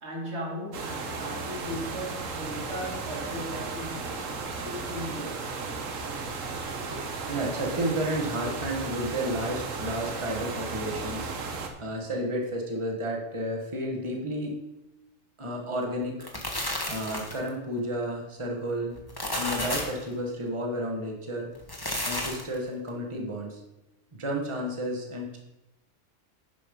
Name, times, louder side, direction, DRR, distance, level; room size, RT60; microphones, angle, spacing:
voice 1, 0.0-4.1 4.6-5.5, equal, 60° right, -2 dB, 2.9 m, -37 dB
sound 1, 0.7-11.7, right 4 dB, 85° right, 1.5 m, -35 dB
voice 2, 7.3-11.3 11.8-14.6 15.4-16.3 16.9-19.0 19.3-21.5 22.0-23.6 24.2-25.4, equal, 25° right, 0 dB, 1.5 m, -31 dB
sound 2, 16.0-17.5 18.9-20.0 21.5-22.6, left 1 dB, 20° left, 1.4 m, -32 dB
11.0 x 5.5 x 5.2 m, 0.99 s
omnidirectional pair, 1.3 m